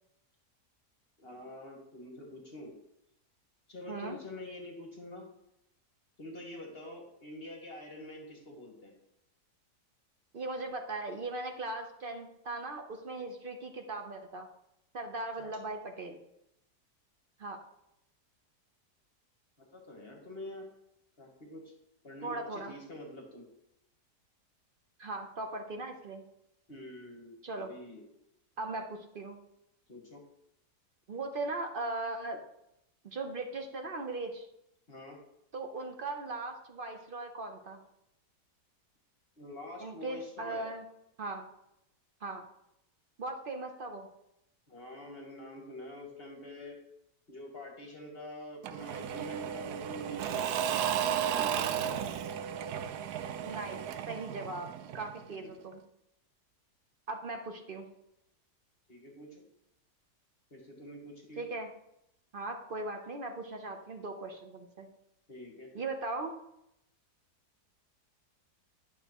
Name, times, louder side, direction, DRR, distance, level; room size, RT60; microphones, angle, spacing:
voice 1, 1.2-2.7 3.7-5.3 6.2-8.9 15.4-15.5 19.6-20.7 21.2-21.7 22.0-23.5 26.7-28.1 29.9-30.2 34.9-35.2 39.4-40.7 44.7-46.8 47.3-52.2 55.2-55.6 58.9-59.4 60.5-61.5 65.3-65.7, left 1 dB, 40° left, 1 dB, 1.3 m, -46 dB
voice 2, 10.3-14.5 14.9-16.2 17.4-17.6 22.2-22.7 25.0-26.2 27.4-27.7 28.6-29.4 31.1-32.4 33.0-34.5 35.5-37.8 39.8-40.8 41.2-41.5 42.2-42.5 43.2-44.1 53.4-53.8 54.1-54.7 54.9-55.8 57.1-57.9 61.4-61.7 62.3-64.9 65.7-66.3, right 2 dB, 50° right, 4 dB, 0.7 m, -38 dB
Engine / Mechanisms / Drill, 48.6-55.3, right 9 dB, 75° right, 1.1 m, -34 dB
10.0 x 6.5 x 3.0 m, 0.81 s
omnidirectional pair, 1.8 m